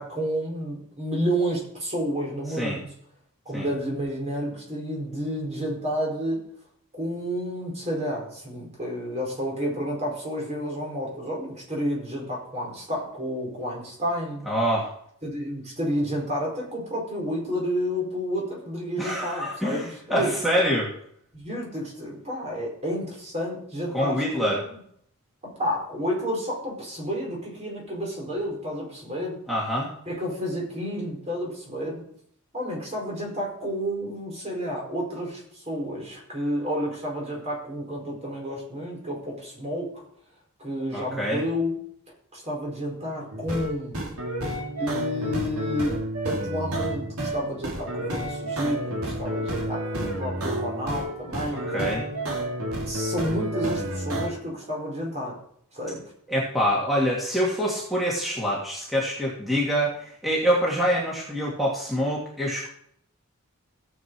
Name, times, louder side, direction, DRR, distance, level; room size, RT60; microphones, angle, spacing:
voice 1, 0.0-2.9 3.4-6.5 6.9-14.4 15.2-20.4 21.3-24.8 25.4-29.4 30.1-32.0 32.5-40.0 40.6-41.8 42.3-44.0 44.8-46.0 46.2-52.0 52.8-55.4 55.7-56.0, equal, 30° right, -2 dB, 4.8 m, -30 dB
voice 2, 14.5-14.9 19.0-20.9 23.9-24.6 29.5-29.9 40.9-41.4 51.7-52.1 56.3-62.7, equal, ahead, -5 dB, 2.4 m, -25 dB
sound 1, 43.3-54.3, right 1 dB, 85° right, 2.9 m, -30 dB
16.5 x 8.0 x 4.7 m, 0.67 s
head